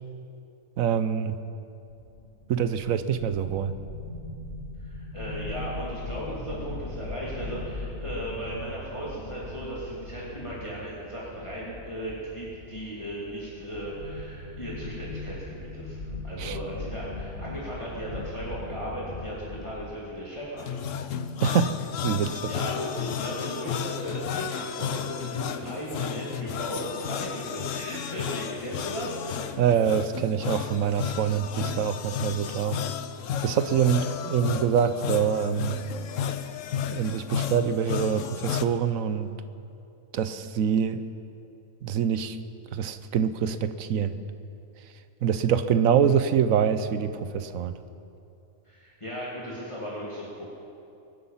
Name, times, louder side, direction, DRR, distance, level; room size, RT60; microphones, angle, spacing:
voice 1, 0.8-1.4 2.5-3.7 16.4-16.6 21.4-21.8 22.0-22.5 29.6-32.8 33.4-35.8 36.9-39.3 40.1-41.0 41.8-42.4 42.7-44.1 45.2-47.7, right 8 dB, 70° right, 11 dB, 1.1 m, -25 dB
sound 1, 1.9-19.9, left 2 dB, 50° left, 1.6 m, -39 dB
voice 2, 4.8-20.7 22.5-29.6 33.9-34.0 48.7-50.4, equal, 20° left, -6 dB, 2.5 m, -36 dB
sound 2, 20.6-38.7, left 8 dB, 65° left, 1.0 m, -33 dB
22.5 x 10.0 x 5.6 m, 2.6 s
omnidirectional pair, 1.5 m